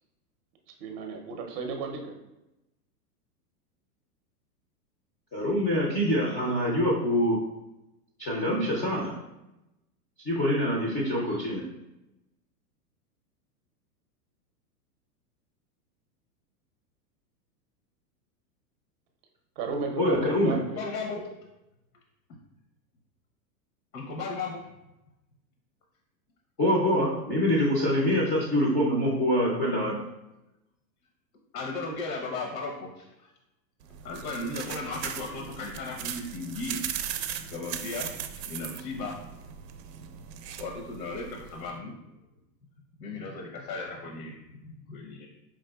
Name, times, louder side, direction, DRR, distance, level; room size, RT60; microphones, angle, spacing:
voice 1, 0.8-2.2 19.6-20.8, right 4 dB, 35° right, 3 dB, 0.6 m, -34 dB
voice 2, 5.3-7.4 8.2-9.1 10.2-11.6 20.0-20.6 26.6-29.9, equal, 20° left, -5 dB, 0.4 m, -25 dB
voice 3, 20.7-21.3 23.9-24.6 27.9-28.0 31.5-33.3 34.0-36.8 37.5-38.1 38.5-39.2 40.6-41.9 43.0-45.3, left 3 dB, 85° left, 1 dB, 0.9 m, -36 dB
sound 1, 33.8-41.7, right 9 dB, 80° right, 0.5 m, -38 dB
4.9 x 3.4 x 2.2 m, 0.94 s
hypercardioid pair, 135°, 49 cm